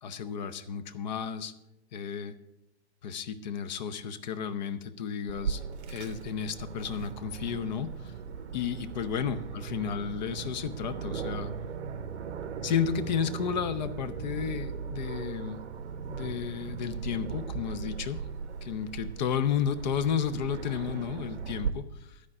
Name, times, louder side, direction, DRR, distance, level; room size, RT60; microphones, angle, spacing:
voice 1, 0.0-1.5 1.9-2.3 3.0-5.6 5.9-8.1 8.5-11.5 12.6-15.6 16.1-18.2 18.6-22.2, left 7 dB, 40° left, 13 dB, 0.7 m, -32 dB
Aircraft, 5.3-21.7, right 6 dB, 80° right, 0.9 m, -38 dB
13.0 x 4.9 x 7.5 m, 0.91 s
hypercardioid pair, 145°, 34 cm